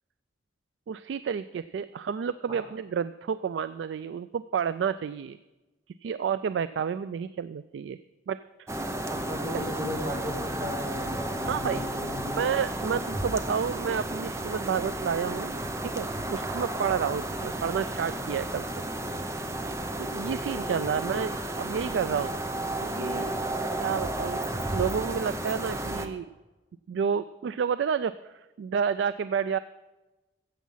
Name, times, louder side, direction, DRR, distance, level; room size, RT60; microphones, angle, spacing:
voice 1, 0.9-5.4 6.0-8.0 8.3-8.4 11.5-11.8 12.4-15.5 15.8-18.8 20.0-22.4 22.8-23.3 23.8-24.4 24.7-26.3 26.9-29.6, right 7 dB, 80° right, 14 dB, 0.3 m, -30 dB
sound 1, 8.7-26.1, right 1 dB, 15° right, 0.6 m, -33 dB
voice 2, 9.1-12.4, left 1 dB, 60° right, -3 dB, 3.8 m, -36 dB
13.5 x 8.2 x 5.6 m, 1.1 s
head